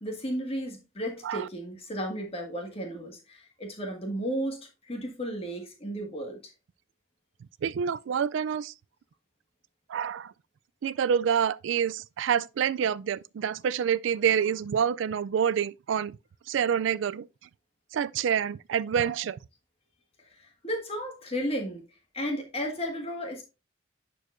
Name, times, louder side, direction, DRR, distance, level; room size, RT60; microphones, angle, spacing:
voice 1, 0.0-4.6 4.8-6.4 20.4-21.8 22.1-23.4, equal, 30° left, 1.7 m, -34 dB
voice 2, 7.6-8.7 9.9-10.3 10.8-16.2 16.5-17.3 17.9-19.4, right 8 dB, 70° right, 0.3 m, -27 dB
11.0 x 4.6 x 2.5 m
head